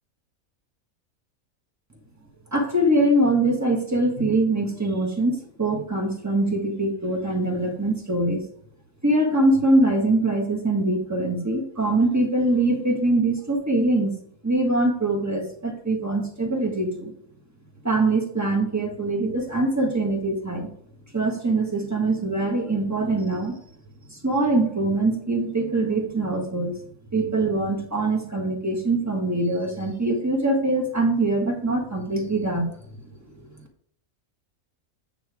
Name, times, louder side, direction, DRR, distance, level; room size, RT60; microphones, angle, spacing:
voice 1, 2.5-8.4 9.0-14.2 14.4-17.1 17.8-20.7 21.1-23.6 24.1-26.7 27.1-32.7, right 2 dB, 15° right, 1 dB, 1.4 m, -23 dB
9.0 x 3.9 x 4.8 m, 0.65 s
omnidirectional pair, 1.4 m